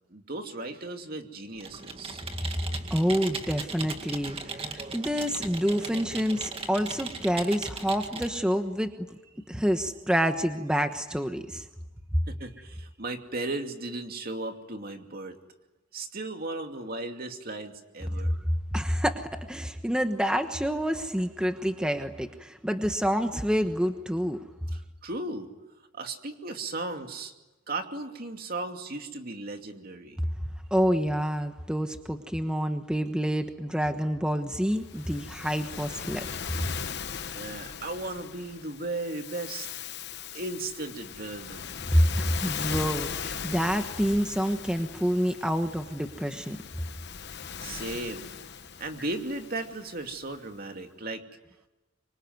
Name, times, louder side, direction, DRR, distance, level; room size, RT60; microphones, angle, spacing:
voice 1, 0.1-2.2 12.3-15.4 15.9-18.4 24.7-25.5 25.9-27.3 27.7-30.2 37.3-39.7 40.3-41.7 47.6-48.3 48.8-51.3, right 2 dB, 50° right, 5 dB, 2.6 m, -36 dB
Computer keyboard, 1.6-8.4, right 4 dB, 30° right, 2.2 m, -38 dB
voice 2, 2.9-8.9 9.5-11.6 18.7-24.4 30.7-36.3 41.9-46.6, equal, 5° right, 6 dB, 1.2 m, -27 dB
Waves surf, 34.8-50.3, left 7 dB, 60° left, 1.0 m, -39 dB
25.0 x 25.0 x 9.5 m, 1.1 s
head